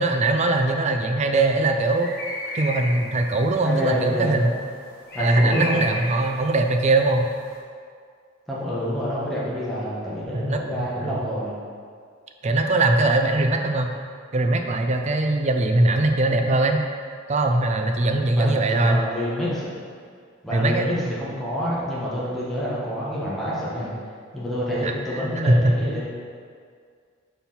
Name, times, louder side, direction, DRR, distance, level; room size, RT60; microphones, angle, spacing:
voice 1, 0.0-2.1 2.5-4.5 5.2-7.3 10.3-11.2 12.4-13.9 14.3-16.8 17.3-19.0 20.5-20.9 24.8-25.8, right 2 dB, 35° right, 4 dB, 0.5 m, -21 dB
sound 1, 1.9-7.6, equal, 50° left, 1.4 m, -35 dB
voice 2, 3.6-4.5 5.1-5.9 8.5-11.6 18.3-19.7 20.4-23.9 24.3-26.1, equal, ahead, -9 dB, 1.3 m, -28 dB
5.6 x 4.4 x 5.6 m, 2.1 s
head